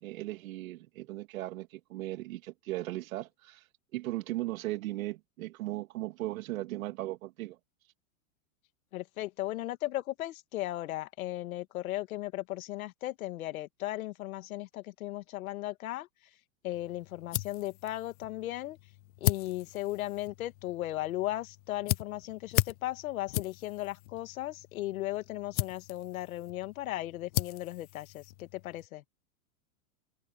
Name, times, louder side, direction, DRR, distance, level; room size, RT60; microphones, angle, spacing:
voice 1, 0.0-3.6 3.9-7.6, right 17 dB, 65° right, 2.7 m, -37 dB
voice 2, 8.9-16.1 16.6-18.8 19.2-29.0, left 15 dB, 70° left, 2.1 m, -36 dB
sound 1, 16.7-28.9, left 19 dB, 30° left, 0.4 m, -37 dB
supercardioid pair, 165°, 43 cm